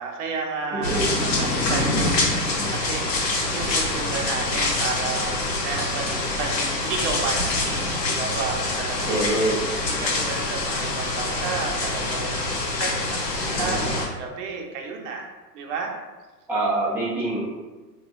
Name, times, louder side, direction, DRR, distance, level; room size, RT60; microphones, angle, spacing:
voice 1, 0.0-15.3 15.5-15.9, right 4 dB, 45° right, 1 dB, 0.7 m, -32 dB
voice 2, 0.7-1.1 9.1-9.6 16.5-17.5, right 2 dB, 5° right, -9 dB, 0.4 m, -24 dB
sound 1, 0.8-14.1, left 2 dB, 75° left, 1.0 m, -25 dB
3.8 x 2.3 x 3.0 m, 1.2 s
figure-of-eight pair, 100°, 49 cm